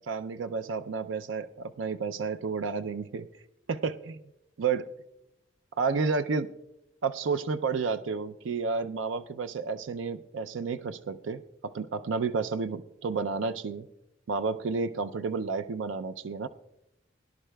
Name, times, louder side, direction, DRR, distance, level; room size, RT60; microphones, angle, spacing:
voice 1, 0.1-3.3 3.7-4.2 4.6-4.9 5.8-6.5 7.0-11.4 11.7-13.9 14.3-16.5, right 5 dB, 80° right, 10 dB, 0.4 m, -31 dB
22.5 x 11.0 x 2.2 m, 0.87 s
head